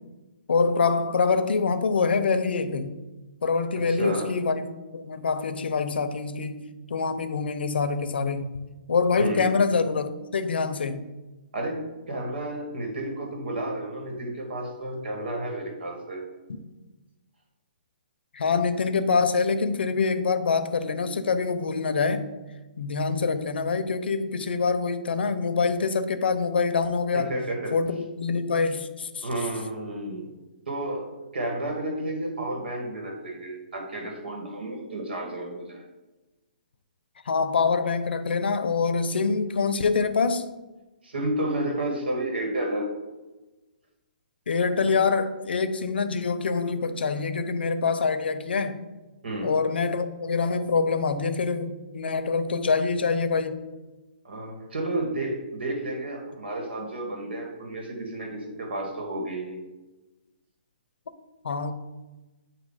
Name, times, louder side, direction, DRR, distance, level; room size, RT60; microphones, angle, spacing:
voice 1, 0.5-3.0 3.4-11.0 16.5-16.6 18.3-22.3 22.8-27.3 27.7-29.3 37.3-40.5 44.5-48.8 49.4-53.6 61.4-61.7, left 4 dB, 85° left, 10 dB, 0.7 m, -25 dB
voice 2, 3.9-4.3 9.2-9.5 11.5-16.2 27.1-27.7 29.2-30.3 30.7-35.8 41.0-42.9 49.2-49.5 54.2-59.6, right 1 dB, 80° right, 1 dB, 2.0 m, -31 dB
8.4 x 2.8 x 5.6 m, 1.1 s
hypercardioid pair, 160°, 5 cm